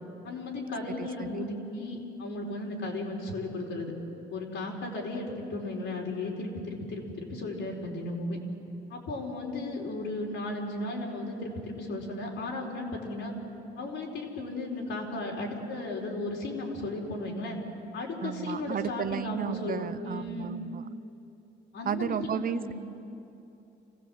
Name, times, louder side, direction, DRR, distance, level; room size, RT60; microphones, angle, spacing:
voice 1, 0.2-3.9 4.3-8.4 8.9-13.3 13.8-17.6 17.9-20.5 21.7-22.7, left 2 dB, 75° left, -1 dB, 4.5 m, -35 dB
voice 2, 1.0-1.5 18.2-20.8 21.8-22.7, right 8 dB, 45° right, 14 dB, 0.7 m, -33 dB
26.0 x 16.5 x 7.8 m, 2.9 s
cardioid pair, 90°, 20 cm